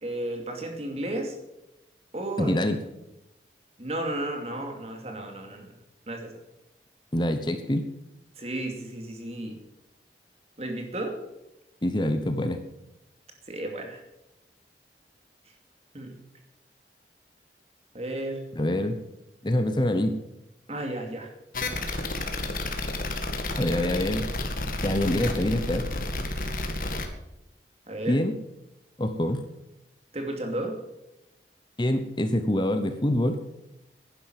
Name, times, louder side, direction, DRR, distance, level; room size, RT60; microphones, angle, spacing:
voice 1, 0.0-1.4 2.1-2.6 3.8-5.7 6.1-6.4 8.4-9.6 10.6-11.2 13.5-14.0 15.9-16.1 17.9-18.4 20.7-21.3 27.9-28.2 30.1-30.7, right 1 dB, 35° right, 3 dB, 2.5 m, -33 dB
voice 2, 2.4-2.8 7.1-7.9 11.8-12.6 18.5-19.0 19.4-20.2 23.6-24.3 24.8-25.9 28.1-28.4 29.0-29.4 31.8-33.4, left 1 dB, 25° left, 8 dB, 0.9 m, -25 dB
sound 1, 21.5-27.1, left 2 dB, 50° left, 1.8 m, -31 dB
11.0 x 10.5 x 7.8 m, 0.90 s
head